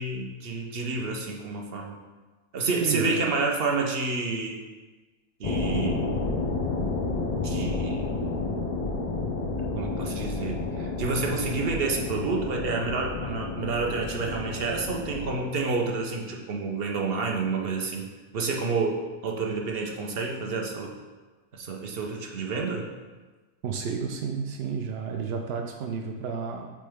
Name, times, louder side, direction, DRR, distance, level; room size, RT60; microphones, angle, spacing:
voice 1, 0.0-2.0 2.5-4.6 5.4-6.0 7.4-8.0 9.8-19.0 19.2-20.9 21.5-22.9, right 4 dB, 50° right, 1 dB, 0.8 m, -29 dB
voice 2, 2.8-3.2 23.6-26.7, right 6 dB, 75° right, 3 dB, 0.5 m, -31 dB
sound 1, 5.4-15.4, left 3 dB, 55° left, 0.4 m, -30 dB
8.5 x 3.3 x 3.5 m, 1.3 s
omnidirectional pair, 1.6 m